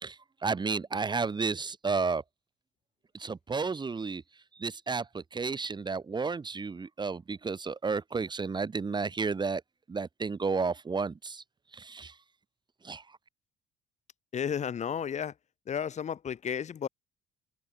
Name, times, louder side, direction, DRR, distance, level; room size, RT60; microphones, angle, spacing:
voice 1, 0.0-2.2 3.1-4.2 4.6-9.6 9.9-11.4 11.7-12.1 12.8-13.0, right 4 dB, 30° right, 2.7 m, -32 dB
voice 2, 14.3-15.3 15.7-16.9, left 8 dB, 50° left, 6.8 m, -33 dB
supercardioid pair, 70°, 16 cm